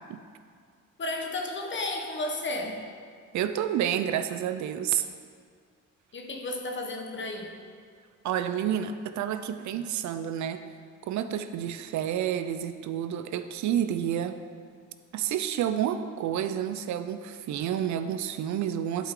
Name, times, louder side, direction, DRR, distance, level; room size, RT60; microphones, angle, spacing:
voice 1, 1.0-2.8 6.1-7.5, left 2 dB, 40° left, 3 dB, 1.1 m, -33 dB
voice 2, 3.3-5.0 8.2-10.6 11.1-14.4 15.1-19.1, right 10 dB, 70° right, 10 dB, 0.5 m, -29 dB
11.5 x 4.9 x 3.7 m, 2.1 s
cardioid pair, 90°, 30 cm